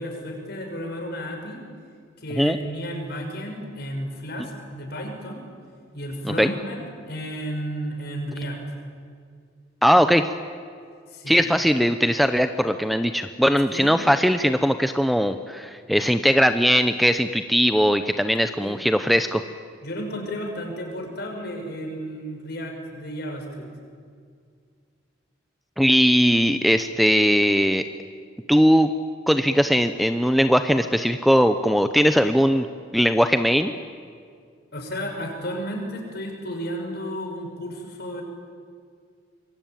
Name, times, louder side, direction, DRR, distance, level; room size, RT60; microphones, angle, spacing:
voice 1, 0.0-1.6 2.2-5.4 5.9-8.6 11.1-11.4 13.7-14.0 18.6-18.8 19.8-23.7 34.7-38.2, equal, 55° left, 3 dB, 6.1 m, -33 dB
voice 2, 9.8-10.3 11.3-19.4 25.8-27.8 28.5-28.9 29.3-32.7 32.9-33.7, equal, ahead, 9 dB, 0.7 m, -19 dB
26.5 x 23.0 x 9.2 m, 2.1 s
head